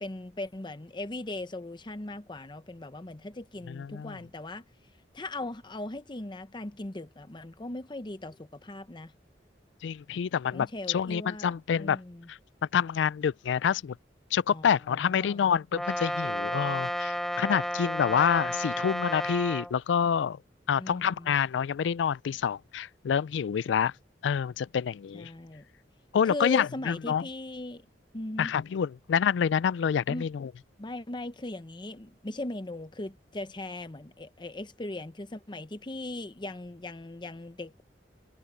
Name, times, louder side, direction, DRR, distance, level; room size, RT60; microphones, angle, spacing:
voice 1, 0.0-4.6 5.1-9.1 10.5-12.3 14.5-15.5 20.7-21.4 25.1-25.6 26.2-27.8 28.1-28.5 30.1-30.3 30.8-37.8, left 2 dB, 25° left, 0.8 m, -39 dB
voice 2, 3.7-4.2 9.8-12.0 12.3-12.4 12.7-13.9 14.3-20.4 20.7-23.9 24.2-25.3 26.1-27.2 28.4-30.5, left 7 dB, 90° left, 0.3 m, -27 dB
Brass instrument, 15.7-19.7, equal, ahead, 1.9 m, -32 dB
head